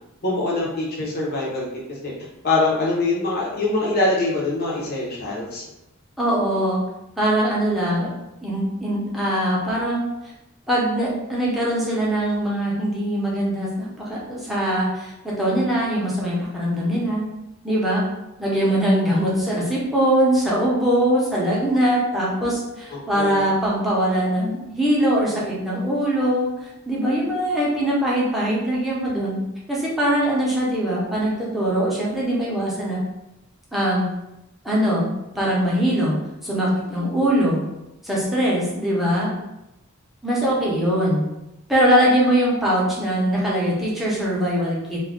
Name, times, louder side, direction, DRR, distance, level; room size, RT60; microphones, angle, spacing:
voice 1, 0.2-2.1 2.4-5.6 22.9-23.3, left 2 dB, 45° left, -5 dB, 0.6 m, -24 dB
voice 2, 6.2-6.8 7.2-8.1 8.4-10.0 10.7-17.3 17.6-18.0 18.4-29.4 29.7-33.0 33.7-34.1 34.6-35.1 35.3-36.2 36.4-37.6 38.0-39.3 40.2-41.3 41.7-45.0, equal, ahead, -6 dB, 0.6 m, -22 dB
2.3 x 2.1 x 3.5 m, 0.92 s
head